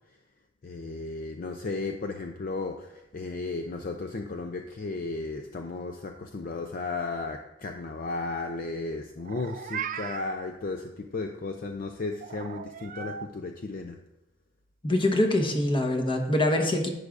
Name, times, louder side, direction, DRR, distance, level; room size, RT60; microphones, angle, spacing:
voice 1, 0.6-14.0, left 3 dB, 45° left, 5 dB, 0.5 m, -34 dB
Meow, 9.2-10.4 12.2-13.3, right 7 dB, 45° right, 0.4 m, -37 dB
voice 2, 14.8-16.9, left 1 dB, 25° left, 3 dB, 1.1 m, -24 dB
11.0 x 8.2 x 2.5 m, 0.91 s
head